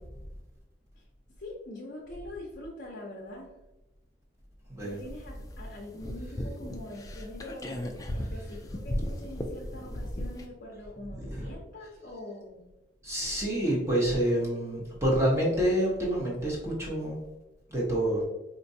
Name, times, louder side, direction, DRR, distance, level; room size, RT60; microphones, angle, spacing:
voice 1, 1.4-3.5 4.8-7.8 8.1-12.7, left 1 dB, 50° left, -4 dB, 0.7 m, -44 dB
voice 2, 4.7-5.0 11.1-11.5 13.0-17.2 17.7-18.3, right 1 dB, 15° right, -4 dB, 1.0 m, -28 dB
sound 1, 4.8-10.4, equal, 20° left, 0.3 m, -36 dB
4.4 x 2.5 x 2.7 m, 1.0 s
head